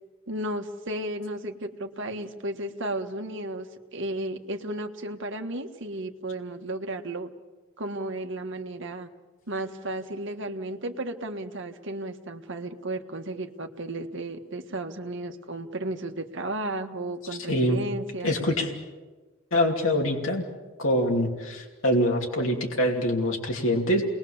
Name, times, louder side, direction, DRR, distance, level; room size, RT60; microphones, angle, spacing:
voice 1, 0.3-3.7 3.9-7.3 7.8-9.1 9.5-18.4, right 1 dB, 65° right, 5 dB, 1.6 m, -34 dB
voice 2, 17.5-17.8 18.2-18.7 19.5-20.4 20.8-24.0, left 1 dB, 75° left, 0 dB, 2.8 m, -24 dB
29.0 x 21.0 x 7.2 m, 1.3 s
head